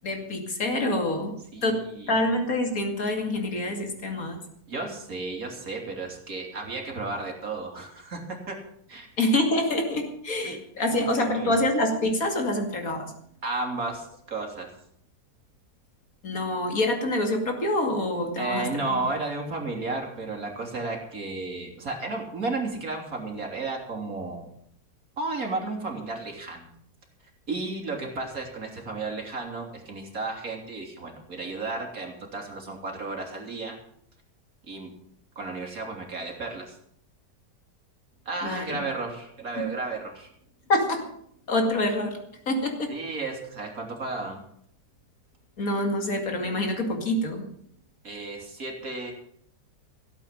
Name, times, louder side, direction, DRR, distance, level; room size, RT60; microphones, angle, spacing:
voice 1, 0.0-1.3 1.6-4.4 9.2-13.1 16.2-18.7 38.4-38.8 39.6-39.7 40.7-41.1 41.5-42.2 42.5-42.9 45.6-47.4, left 1 dB, 55° left, 4 dB, 2.8 m, -26 dB
voice 2, 1.5-2.2 4.7-8.6 8.9-9.1 10.4-10.6 11.2-11.6 13.4-14.7 18.4-24.5 25.2-26.7 27.5-33.7 34.7-34.9 35.4-36.8 38.3-40.3 42.9-44.4 48.0-49.1, right 3 dB, 55° right, 1 dB, 3.5 m, -33 dB
16.5 x 8.5 x 7.6 m, 0.68 s
omnidirectional pair, 1.8 m